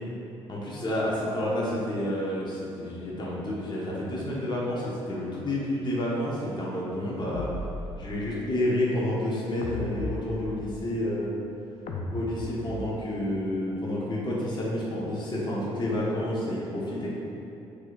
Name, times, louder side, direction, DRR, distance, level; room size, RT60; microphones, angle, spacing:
voice 1, 0.5-7.5 8.0-11.3 12.1-17.1, left 1 dB, 30° left, -6 dB, 1.4 m, -29 dB
sound 1, 7.3-8.4 9.6-10.9 11.9-13.1, left 2 dB, 50° left, 0.7 m, -36 dB
8.1 x 4.9 x 2.6 m, 3.0 s
figure-of-eight pair, 45°, 15 cm